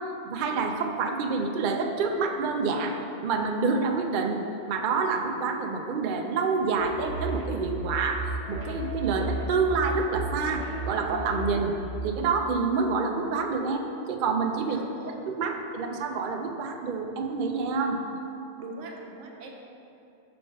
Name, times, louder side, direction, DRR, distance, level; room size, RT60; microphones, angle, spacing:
voice 1, 0.3-3.0 3.2-4.4 4.7-11.7 12.0-18.0, right 4 dB, 60° right, 3 dB, 0.5 m, -27 dB
sound 1, 6.8-12.0, right 1 dB, 30° right, 0.9 m, -34 dB
voice 2, 14.7-15.6 18.6-19.5, right 2 dB, 85° right, 0 dB, 1.1 m, -42 dB
5.7 x 3.8 x 5.0 m, 2.7 s
omnidirectional pair, 1.2 m